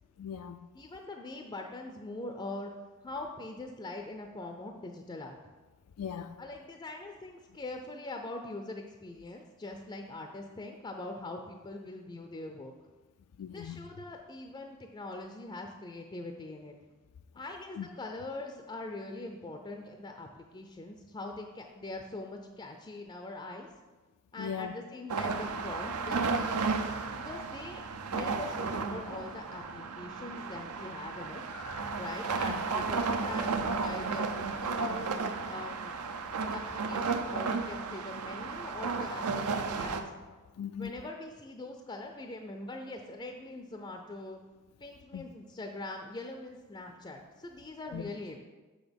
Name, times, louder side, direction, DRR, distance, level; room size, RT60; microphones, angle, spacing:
voice 1, 0.2-0.7 6.0-6.3 13.4-13.8 17.7-17.9 24.4-24.7 31.5-32.0 32.5-32.6 40.6-40.9 45.1-45.3 47.9-48.0, left 8 dB, 85° left, 0.4 m, -39 dB
voice 2, 0.7-2.7 3.0-5.5 6.4-12.7 13.5-16.7 17.3-23.7 24.3-26.8 27.1-27.8 28.1-31.4 32.0-35.1 35.5-36.0 36.5-40.0 40.8-44.4 44.8-48.4, left 2 dB, 20° left, 0.4 m, -42 dB
sound 1, 25.1-40.0, right 4 dB, 85° right, 0.6 m, -33 dB
6.4 x 6.2 x 5.2 m
head